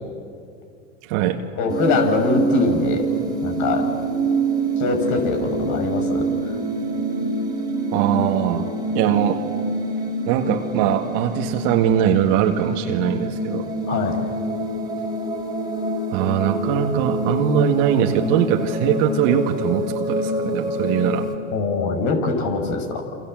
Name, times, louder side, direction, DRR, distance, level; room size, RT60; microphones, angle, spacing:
voice 1, 1.0-1.4 7.9-8.7 8.9-9.5 10.3-13.7 16.1-21.3, right 10 dB, 55° right, 2 dB, 2.0 m, -21 dB
voice 2, 1.6-3.1 3.4-3.9 4.8-6.3 13.9-14.2 21.5-23.0, left 4 dB, 50° left, 5 dB, 5.8 m, -22 dB
sound 1, 1.7-21.4, right 1 dB, 10° right, 4.0 m, -26 dB
28.5 x 26.5 x 7.7 m, 2.3 s
hypercardioid pair, 115°, 38 cm